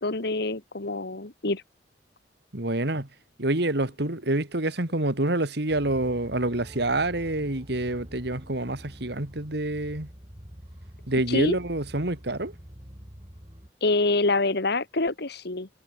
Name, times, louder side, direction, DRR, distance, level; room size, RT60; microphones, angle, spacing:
voice 1, 0.0-1.6 11.3-11.6 13.8-15.7, left 2 dB, 65° left, 1.8 m, -26 dB
voice 2, 2.5-3.1 3.4-10.1 11.1-12.5, right 2 dB, 70° right, 2.8 m, -27 dB
sound 1, 5.7-13.7, equal, 30° right, 5.9 m, -46 dB
head